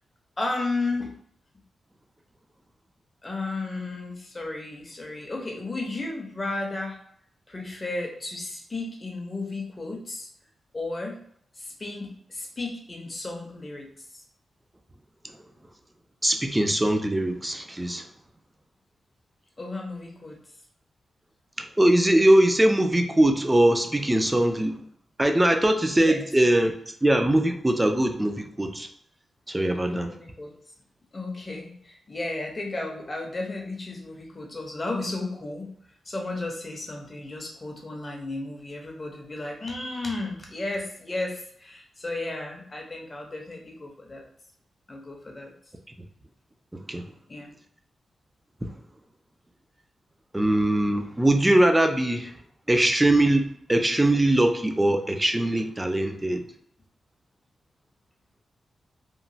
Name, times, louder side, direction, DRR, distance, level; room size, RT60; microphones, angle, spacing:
voice 1, 0.4-1.1 3.2-7.0 7.5-10.3 10.7-11.2 11.6-13.9 19.6-20.4 26.0-26.2 29.8-30.5 31.1-35.7 36.1-44.2 44.9-45.5 47.3-47.5, left 2 dB, 25° left, 1 dB, 0.6 m, -33 dB
voice 2, 16.2-18.1 21.6-24.8 25.2-26.7 27.0-28.9 29.5-30.1 46.9-47.0 50.3-52.3 52.7-56.4, right 1 dB, 10° right, 5 dB, 0.3 m, -21 dB
3.0 x 2.1 x 2.6 m, 0.66 s
wide cardioid pair, 135°, 0 cm